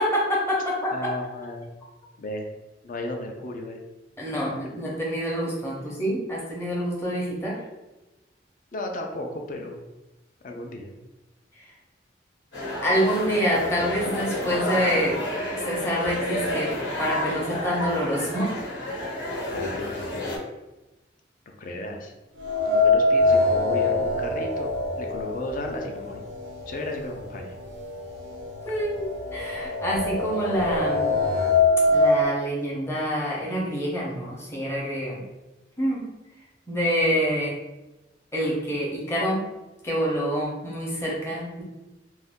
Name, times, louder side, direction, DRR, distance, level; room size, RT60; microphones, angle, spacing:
voice 1, 0.0-1.0 4.2-7.6 12.8-15.2 15.6-18.6 28.7-31.1 31.9-35.2 35.8-36.1 36.7-37.6 38.3-39.4 39.8-41.6, equal, 15° left, -4 dB, 0.7 m, -26 dB
voice 2, 0.9-1.7 2.2-2.5 2.8-3.8 4.3-4.7 8.7-9.8 10.4-10.9 13.8-13.9 19.5-20.4 21.5-22.1 22.7-24.7 24.9-26.2 26.7-27.5, left 1 dB, 45° left, 2 dB, 0.4 m, -34 dB
sound 1, 12.5-20.4, left 1 dB, 80° left, 1.1 m, -30 dB
sound 2, 22.4-26.5 26.8-26.9 27.9-28.0 28.4-32.2, left 2 dB, 85° right, 0.4 m, -23 dB
2.6 x 2.2 x 3.4 m, 1.0 s
head